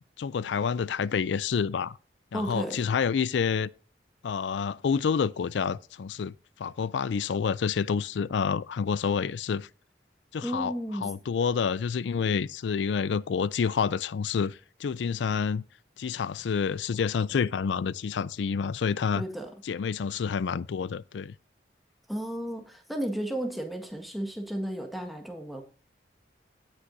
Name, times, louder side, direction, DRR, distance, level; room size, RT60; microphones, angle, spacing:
voice 1, 0.2-2.0 2.3-3.7 4.2-6.3 6.6-9.7 10.3-10.7 11.0-15.6 16.0-19.2 19.6-21.3, left 6 dB, 75° left, 0.4 m, -28 dB
voice 2, 2.3-2.8 10.4-11.1 19.1-19.5 22.1-25.6, right 1 dB, ahead, 1.6 m, -33 dB
17.5 x 6.2 x 2.6 m
head